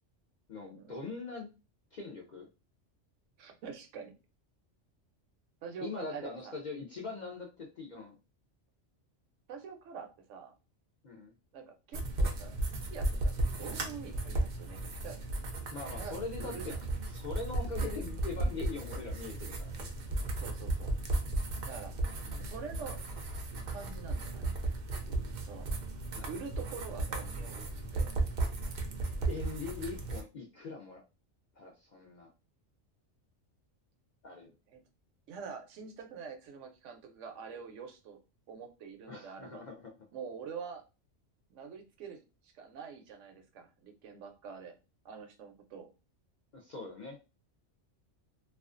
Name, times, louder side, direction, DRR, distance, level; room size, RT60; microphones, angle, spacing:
voice 1, 0.5-1.5 1.9-2.5 5.8-8.1 11.0-11.3 15.7-16.7 17.1-19.8 22.2-22.5 26.1-26.3 27.3-27.5 29.3-31.0 31.6-32.3 34.2-34.5 39.1-39.8 46.5-47.2, left 4 dB, 55° left, -1 dB, 0.5 m, -42 dB
voice 2, 3.4-4.1 5.6-6.5 9.5-10.5 11.5-15.2 15.9-16.8 19.6-19.7 20.4-20.9 21.6-21.9 22.4-23.0 23.5-24.5 25.5-25.7 26.2-27.7 27.9-28.1 34.7-34.8 35.3-38.2 38.5-39.7 40.1-40.8 41.5-44.8 45.0-45.9, right 6 dB, 80° right, 5 dB, 0.9 m, -46 dB
sound 1, 11.9-30.2, right 2 dB, 60° right, 0.4 m, -35 dB
2.4 x 2.3 x 2.4 m, 0.28 s
omnidirectional pair, 1.3 m